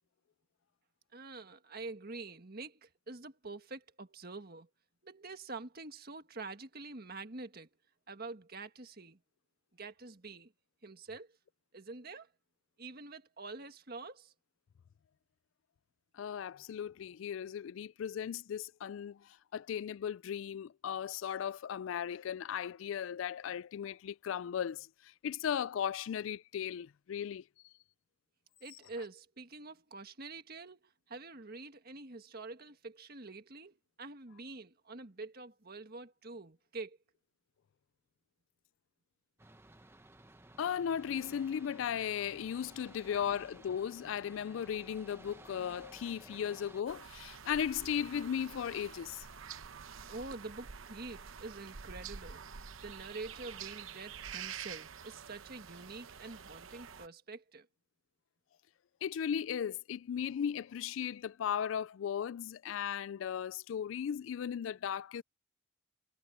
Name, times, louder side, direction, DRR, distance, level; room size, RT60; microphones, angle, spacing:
voice 1, 1.1-4.7 5.0-7.7 8.1-9.2 9.8-10.5 10.8-11.3 11.7-12.3 12.8-14.3 28.6-37.0 50.1-52.4 52.8-57.7, right 3 dB, 50° right, 1.7 m, -46 dB
voice 2, 16.2-19.2 19.5-24.9 25.2-27.4 40.6-49.3 59.0-65.2, left 8 dB, 75° left, 0.3 m, -36 dB
sound 1, 39.4-46.8, right 1 dB, 10° right, 1.0 m, -56 dB
sound 2, 46.9-57.1, right 7 dB, 85° right, 0.9 m, -48 dB
head